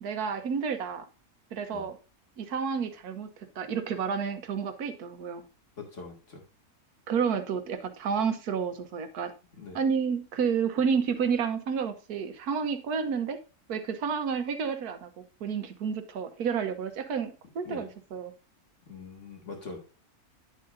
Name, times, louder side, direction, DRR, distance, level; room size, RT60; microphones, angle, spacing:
voice 1, 0.0-1.0 1.5-2.0 2.4-3.3 3.6-5.4 7.1-9.3 9.7-13.4 13.7-15.1 15.4-18.3, right 6 dB, 90° right, 9 dB, 1.5 m, -30 dB
voice 2, 5.8-6.4 9.5-9.8 17.6-17.9 18.9-19.8, left 4 dB, 55° left, 1 dB, 2.5 m, -43 dB
9.7 x 7.6 x 2.6 m, 0.32 s
omnidirectional pair, 1.6 m